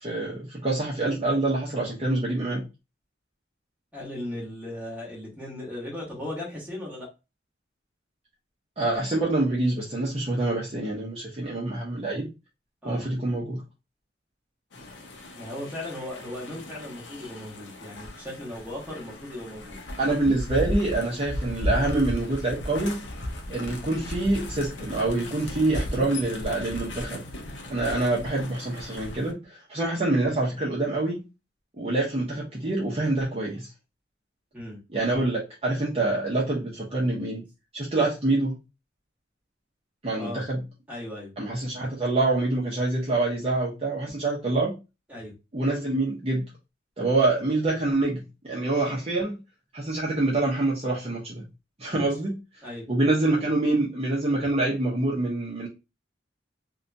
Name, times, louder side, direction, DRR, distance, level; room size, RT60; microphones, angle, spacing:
voice 1, 0.0-2.6 8.8-12.3 12.8-13.6 20.0-23.0 23.5-27.2 27.7-31.2 31.8-33.7 34.9-37.4 37.7-38.6 40.0-40.6 41.4-44.7 45.5-46.4 47.0-49.4 49.7-51.4 51.8-52.3 52.9-55.7, right 2 dB, 35° right, -5 dB, 0.6 m, -26 dB
voice 2, 3.9-7.1 12.8-13.1 15.3-19.8 34.5-34.8 40.2-40.5 40.9-41.3 45.1-45.4 51.9-52.1 52.6-52.9, left 1 dB, 10° right, -4 dB, 1.0 m, -37 dB
sound 1, 14.7-29.3, left 1 dB, 75° left, 0.5 m, -35 dB
2.7 x 2.2 x 2.5 m, 0.27 s
head